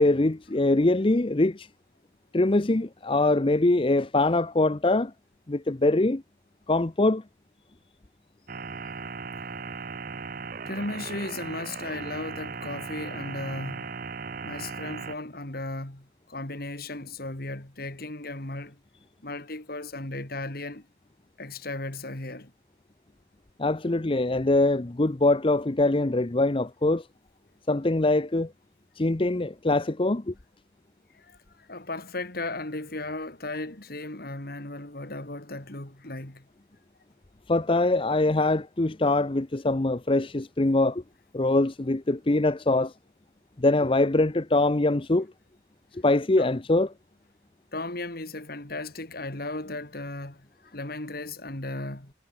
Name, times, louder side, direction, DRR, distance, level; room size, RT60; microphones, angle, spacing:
voice 1, 0.0-1.7 2.3-5.1 5.5-6.2 6.7-7.2 23.6-27.1 27.7-28.5 29.0-30.3 37.5-41.0 41.3-42.9 43.6-45.3 45.9-46.9, left 2 dB, 30° left, 0.7 m, -23 dB
sound 1, 8.5-15.2, right 5 dB, 50° right, 0.9 m, -37 dB
voice 2, 10.7-13.9 14.4-18.8 19.2-20.9 21.4-22.5 31.1-36.5 46.4-46.5 47.7-52.1, left 2 dB, 55° left, 2.9 m, -36 dB
head